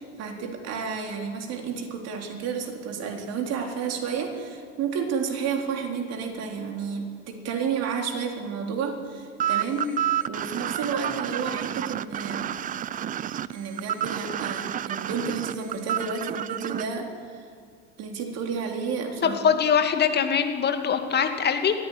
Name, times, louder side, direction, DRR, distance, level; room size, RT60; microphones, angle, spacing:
voice 1, 0.0-9.9 10.2-12.6 13.5-17.5 18.0-19.4, right 6 dB, 45° right, 3 dB, 4.0 m, -31 dB
sound 1, 9.4-16.8, right 10 dB, 20° right, 0.6 m, -29 dB
voice 2, 19.2-21.8, left 7 dB, 25° left, 6 dB, 2.4 m, -23 dB
22.0 x 14.5 x 10.0 m, 2.3 s
figure-of-eight pair, 80°, 37 cm